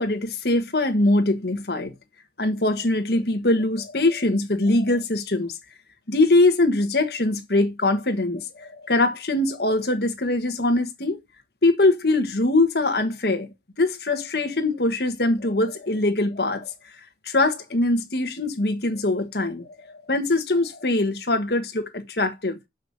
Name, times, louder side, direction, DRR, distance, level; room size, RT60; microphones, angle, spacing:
voice 1, 0.0-1.9 2.4-5.5 6.1-11.2 11.6-13.5 13.8-16.7 17.2-22.6, left 2 dB, 60° left, 1.4 m, -22 dB
6.9 x 5.5 x 6.5 m
head